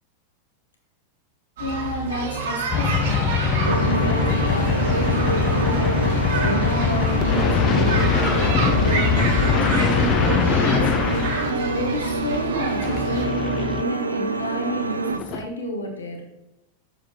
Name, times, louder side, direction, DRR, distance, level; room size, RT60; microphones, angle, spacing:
voice 1, 1.6-5.9 6.4-10.9 11.4-16.2, equal, 70° left, 2 dB, 1.3 m, -31 dB
sound 1, 1.6-13.3, right 4 dB, 55° right, 1.3 m, -29 dB
sound 2, 2.7-11.5 12.8-13.8 15.1-15.4, left 7 dB, 30° left, 0.6 m, -22 dB
sound 3, 3.6-15.2, right 3 dB, 75° right, 0.4 m, -26 dB
7.0 x 6.7 x 3.1 m, 0.96 s
figure-of-eight pair, 90°, 0 cm